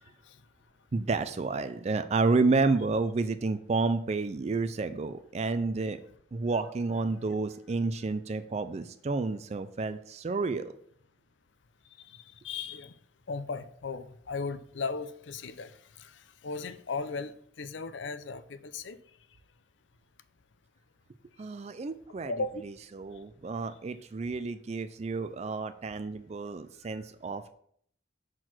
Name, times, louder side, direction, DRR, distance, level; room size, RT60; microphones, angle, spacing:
voice 1, 0.9-6.0 6.3-10.7 21.4-22.3 22.9-27.5, right 3 dB, 35° right, 10 dB, 0.4 m, -30 dB
voice 2, 12.1-12.9 13.3-15.7 16.0-16.1 16.4-19.0 22.2-22.6, left 4 dB, 75° left, 13 dB, 0.6 m, -36 dB
5.9 x 4.5 x 6.1 m, 0.64 s
head